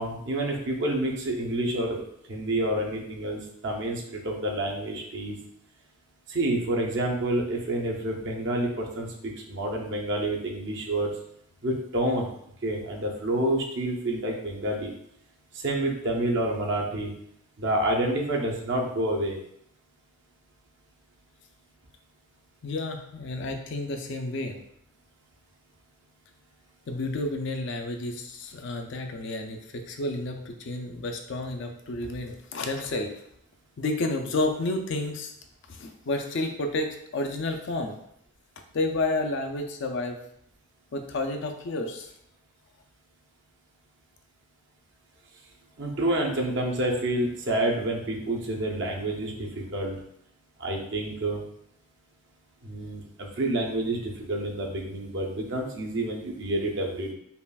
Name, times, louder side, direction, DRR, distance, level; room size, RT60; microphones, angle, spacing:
voice 1, 0.0-2.0 2.3-5.4 6.3-11.1 11.6-12.3 12.6-14.9 15.5-17.1 17.6-19.3 45.8-50.0 50.6-51.4 52.6-57.1, right 1 dB, 55° right, 0 dB, 0.6 m, -28 dB
voice 2, 22.6-24.6 26.9-33.1 33.8-35.3 35.7-38.0 38.7-40.2 40.9-42.1, left 2 dB, 55° left, 5 dB, 0.4 m, -30 dB
5.4 x 2.4 x 2.3 m, 0.72 s
head